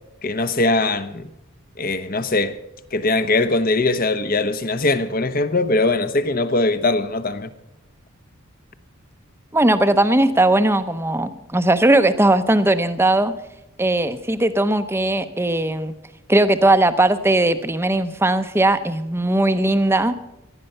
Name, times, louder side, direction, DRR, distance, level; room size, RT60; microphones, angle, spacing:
voice 1, 0.2-1.3 1.8-2.6 2.9-7.5, left 2 dB, 40° left, 0.9 m, -21 dB
voice 2, 9.5-13.3 13.8-15.9 16.3-20.1, right 1 dB, 10° right, 0.7 m, -18 dB
18.0 x 12.0 x 5.6 m
head